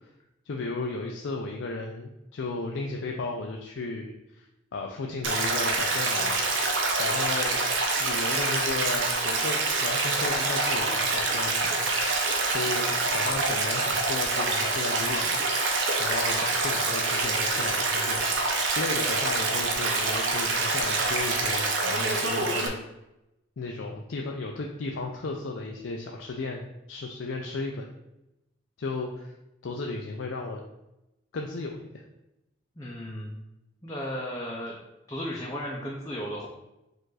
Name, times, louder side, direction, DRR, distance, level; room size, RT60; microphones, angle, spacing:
voice 1, 0.5-4.5 4.7-6.4 7.0-7.6 8.0-11.9 12.5-15.4 16.0-18.2 18.8-22.8 23.6-26.6 26.9-27.9 28.8-29.3 29.6-30.6 31.3-31.9, left 3 dB, 85° left, 1 dB, 0.4 m, -34 dB
Stream, 5.2-22.7, right 3 dB, 85° right, 0.7 m, -26 dB
voice 2, 32.8-33.4 33.8-34.8 35.1-36.5, equal, 20° left, -4 dB, 0.5 m, -35 dB
5.1 x 2.5 x 3.8 m, 0.92 s
head